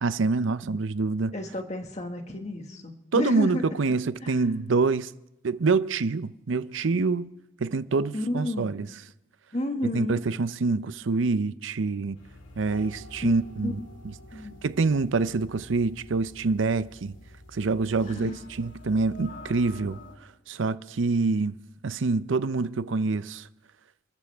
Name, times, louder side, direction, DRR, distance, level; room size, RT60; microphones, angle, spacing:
voice 1, 0.0-1.3 3.1-5.1 5.4-7.3 7.6-8.9 9.8-12.2 12.6-13.8 14.0-14.1 14.6-17.2 17.5-20.0 20.5-21.6 21.8-23.5, right 4 dB, 80° right, 0.6 m, -26 dB
voice 2, 1.3-3.7 4.2-4.4 8.1-8.7 9.5-10.2 13.2-13.3 13.6-13.7 14.3-14.6 18.0-18.3, left 1 dB, 35° left, 1.8 m, -31 dB
sound 1, 12.1-20.2, left 1 dB, 85° left, 2.2 m, -48 dB
28.5 x 13.5 x 3.5 m
head